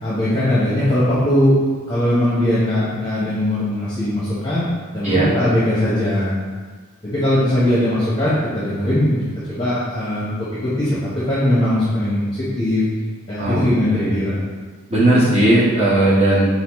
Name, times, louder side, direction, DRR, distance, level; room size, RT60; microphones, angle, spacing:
voice 1, 0.0-1.5 1.9-4.7 4.9-6.3 7.0-10.3 10.6-12.8 13.3-14.4, left 1 dB, 20° left, -11 dB, 0.9 m, -20 dB
voice 2, 5.0-5.3 13.4-14.2 14.9-16.5, right 1 dB, 30° right, -8 dB, 1.1 m, -17 dB
4.1 x 4.0 x 3.0 m, 1.5 s
head